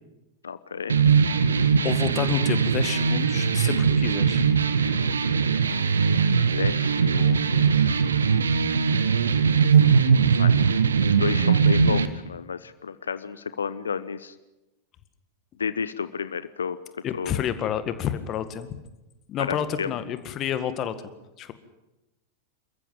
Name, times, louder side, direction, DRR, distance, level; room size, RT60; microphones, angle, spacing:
voice 1, 0.4-1.0 6.5-8.0 10.4-10.7 11.0-14.3 15.6-16.8 17.1-17.4 19.4-19.9, left 6 dB, 70° left, 15 dB, 0.8 m, -32 dB
sound 1, 0.9-12.1, right 6 dB, 70° right, 1.3 m, -20 dB
voice 2, 1.8-4.5 17.0-18.7 19.3-21.0 21.4-21.5, left 10 dB, 35° left, 12 dB, 1.9 m, -29 dB
27.5 x 14.5 x 9.0 m, 1.0 s
figure-of-eight pair, 90°, 0 cm